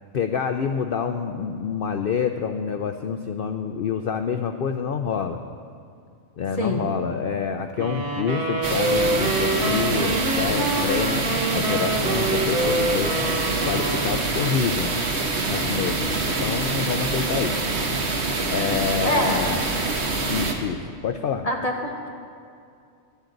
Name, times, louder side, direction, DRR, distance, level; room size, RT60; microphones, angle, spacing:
voice 1, 0.1-5.4 6.4-13.2 13.7-14.9 15.5-17.6 18.5-19.6 20.3-21.5, left 6 dB, 60° left, 7 dB, 0.5 m, -27 dB
voice 2, 6.6-6.9 19.0-19.5 21.4-22.1, left 1 dB, 30° left, 0 dB, 1.4 m, -25 dB
sound 1, 7.8-14.6, right 1 dB, 85° right, 1.6 m, -26 dB
sound 2, 8.6-20.5, right 3 dB, 55° right, 1.3 m, -25 dB
15.5 x 12.0 x 3.9 m, 2.4 s
omnidirectional pair, 1.4 m